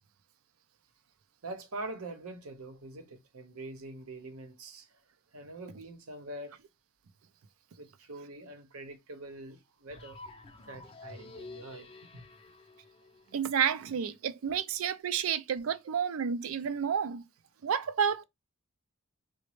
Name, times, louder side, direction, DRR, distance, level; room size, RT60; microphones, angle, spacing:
voice 1, 1.4-4.9 5.3-6.6 7.8-10.2 10.7-12.3, right 2 dB, 85° right, 0.8 m, -44 dB
sound 1, 9.9-13.9, left 3 dB, 25° left, 0.4 m, -50 dB
voice 2, 13.3-17.2 17.6-18.2, right 7 dB, 70° right, 0.4 m, -30 dB
4.0 x 2.1 x 3.1 m
head